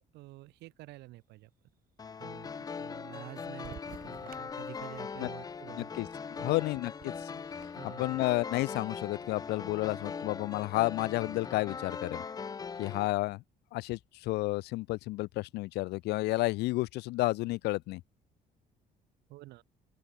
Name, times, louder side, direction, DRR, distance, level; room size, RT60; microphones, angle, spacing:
voice 1, 0.0-1.5 2.2-5.9 6.3-6.7 7.6-8.1 19.3-19.6, right 18 dB, 85° right, 2.8 m, -49 dB
sound 1, 2.0-13.1, left 5 dB, 20° left, 0.4 m, -40 dB
sound 2, 3.6-7.7, right 10 dB, 55° right, 5.0 m, -54 dB
voice 2, 5.8-7.3 7.8-12.2 12.8-13.4 13.7-18.0, left 20 dB, 80° left, 0.4 m, -31 dB
open air
cardioid pair, 110°, 17 cm